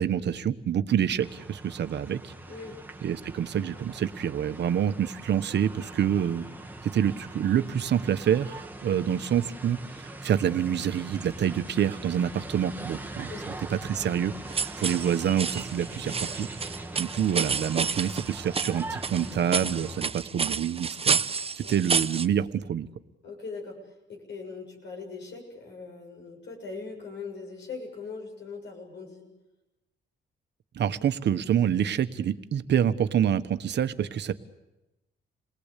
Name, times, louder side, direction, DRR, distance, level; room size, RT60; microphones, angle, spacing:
voice 1, 0.0-2.3 3.0-6.4 6.8-13.3 13.7-16.5 17.0-21.2 21.6-22.9 30.7-34.3, right 9 dB, 60° right, 11 dB, 1.3 m, -27 dB
sound 1, 1.2-20.0, right 2 dB, 10° right, 1.9 m, -42 dB
voice 2, 2.5-2.8 13.3-13.6 14.8-15.0 21.6-21.7 23.2-29.2, left 4 dB, 65° left, 0 dB, 7.2 m, -41 dB
sound 2, 14.5-22.3, right 5 dB, 30° right, 0.9 m, -30 dB
28.5 x 19.0 x 8.4 m, 1.0 s
cardioid pair, 90°, 20 cm